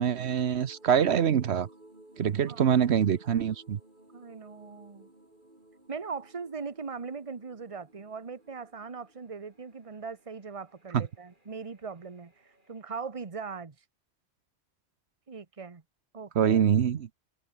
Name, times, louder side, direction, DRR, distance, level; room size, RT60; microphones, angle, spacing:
voice 1, 0.0-1.7 2.2-3.8 16.4-17.1, right 8 dB, 80° right, 1.2 m, -24 dB
sound 1, 0.6-12.8, right 1 dB, 45° right, 5.5 m, -58 dB
voice 2, 2.5-2.8 4.1-5.1 5.9-13.8 15.3-15.8 16.1-16.6, right 5 dB, 30° right, 1.3 m, -40 dB
omnidirectional pair, 1.1 m